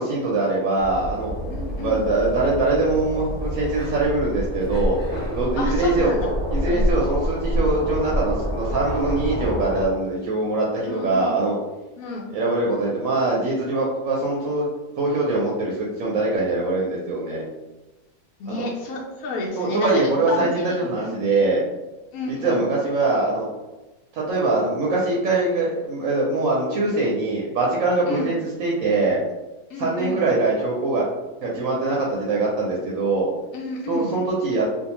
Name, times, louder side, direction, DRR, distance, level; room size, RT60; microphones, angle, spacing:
voice 1, 0.0-1.3 1.8-5.0 5.3-6.1 6.5-11.6 12.3-14.7 15.0-17.4 18.5-18.7 19.6-21.6 22.3-23.5 24.1-29.2 29.8-31.0 31.4-33.3 33.9-34.6, right 2 dB, 70° right, -3 dB, 0.9 m, -23 dB
sound 1, 0.8-9.9, equal, 5° left, 1.1 m, -27 dB
voice 2, 1.5-2.1 5.6-6.3 6.7-6.9 10.9-11.3 12.0-12.3 18.4-19.9 20.3-21.3 22.1-22.6 28.1-28.3 29.7-30.2 33.5-34.1, left 1 dB, 75° left, -3 dB, 1.0 m, -30 dB
2.6 x 2.3 x 2.9 m, 1.1 s
omnidirectional pair, 1.6 m